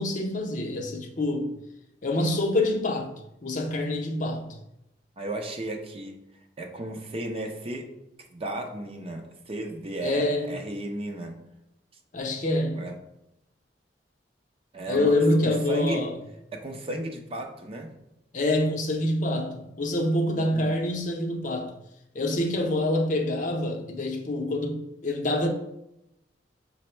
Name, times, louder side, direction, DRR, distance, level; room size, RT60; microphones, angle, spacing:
voice 1, 0.0-1.5 2.0-3.1 3.4-4.5 10.0-10.5 12.1-12.9 14.9-16.1 18.3-21.7 22.1-25.5, left 1 dB, 45° left, 0.6 m, -26 dB
voice 2, 5.2-6.2 6.6-7.9 8.3-11.3 12.8-13.0 14.7-15.2 15.4-16.0 16.5-17.9 20.3-20.7, right 2 dB, 30° right, 0.5 m, -34 dB
6.0 x 2.0 x 4.3 m
head